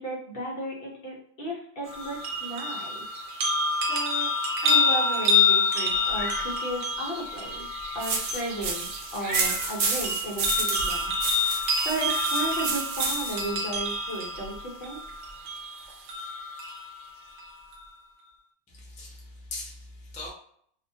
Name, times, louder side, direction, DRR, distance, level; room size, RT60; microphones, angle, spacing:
voice 1, 0.0-3.0 3.9-4.3 4.6-7.7 7.9-11.1 11.4-15.0, right 1 dB, 55° left, -3 dB, 0.9 m, -34 dB
sound 1, 1.9-16.9 17.4-17.5, left 3 dB, 85° right, 1.0 m, -28 dB
Meow, 5.9-6.5 7.0-7.1 9.1-9.7 11.3-11.4 12.0-12.3, right 2 dB, 40° right, 0.8 m, -35 dB
sound 2, 8.0-13.5, right 4 dB, 65° right, 0.4 m, -31 dB
voice 2, 18.8-20.3, left 2 dB, 10° left, -4 dB, 0.4 m, -40 dB
2.4 x 2.1 x 2.6 m, 0.62 s
omnidirectional pair, 1.2 m